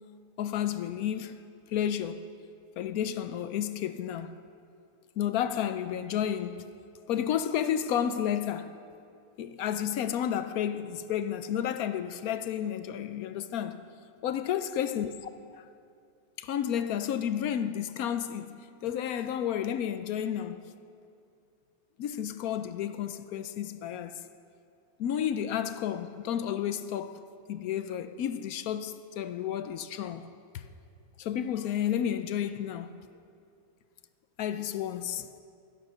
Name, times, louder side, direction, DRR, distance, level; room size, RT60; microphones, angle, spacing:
voice 1, 0.4-1.4 1.7-2.2 2.8-4.4 5.2-6.7 7.1-8.7 9.4-13.8 14.2-15.1 15.5-15.6 16.4-20.6 22.0-24.2 25.0-30.3 30.5-30.6 31.2-32.9 34.4-35.3, left 9 dB, 70° left, 1.1 m, -31 dB
16.5 x 12.0 x 5.5 m
omnidirectional pair, 1.7 m